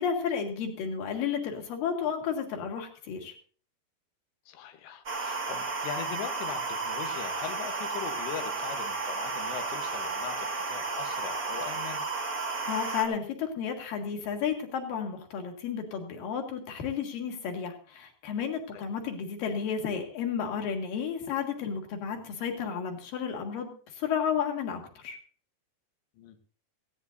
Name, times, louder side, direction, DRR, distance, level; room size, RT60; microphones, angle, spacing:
voice 1, 0.0-3.3 12.7-25.2, left 7 dB, 60° left, 3 dB, 3.3 m, -32 dB
voice 2, 4.5-12.1 18.7-18.8 22.1-22.3 26.2-26.4, left 9 dB, 90° left, 7 dB, 3.4 m, -40 dB
sound 1, 5.0-13.0, right 4 dB, 45° right, 1.1 m, -33 dB
19.5 x 15.5 x 2.7 m, 0.42 s
omnidirectional pair, 4.9 m